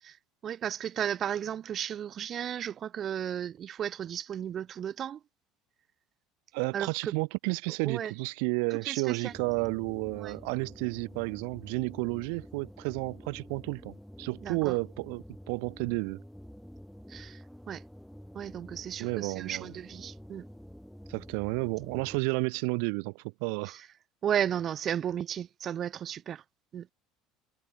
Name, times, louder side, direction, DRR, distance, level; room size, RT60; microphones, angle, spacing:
voice 1, 0.4-5.2 6.7-7.1 7.8-8.1 8.9-9.3 10.2-10.4 14.4-14.7 17.1-17.4 17.7-17.8 18.3-20.4 24.2-26.4 26.7-26.9, right 9 dB, 35° right, 0.7 m, -34 dB
voice 2, 6.5-16.2 19.0-19.7 21.1-23.8, right 40 dB or more, 80° right, 0.6 m, -32 dB
sound 1, 9.3-22.2, equal, ahead, 1.5 m, -49 dB
cardioid pair, 155°, 0 cm